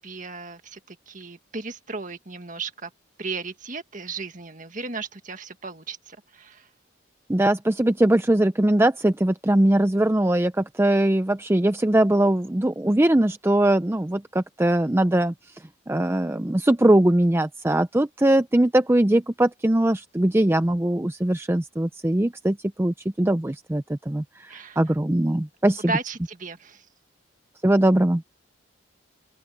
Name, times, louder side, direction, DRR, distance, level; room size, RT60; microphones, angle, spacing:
voice 1, 0.0-2.9 3.2-6.7 24.5-24.8 25.9-26.8, right 3 dB, 40° right, 1.8 m, -35 dB
voice 2, 7.3-25.9 27.6-28.3, right 1 dB, 10° right, 0.4 m, -21 dB
open air
head